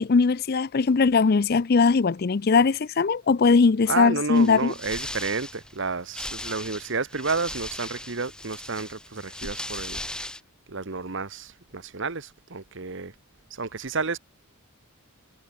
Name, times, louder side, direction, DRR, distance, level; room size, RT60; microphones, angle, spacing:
voice 1, 0.0-4.7, left 4 dB, 45° left, 0.4 m, -20 dB
voice 2, 3.9-10.0 10.7-13.1 13.5-14.2, right 4 dB, 55° right, 1.2 m, -31 dB
sound 1, 4.3-10.4, left 1 dB, 5° left, 1.9 m, -38 dB
head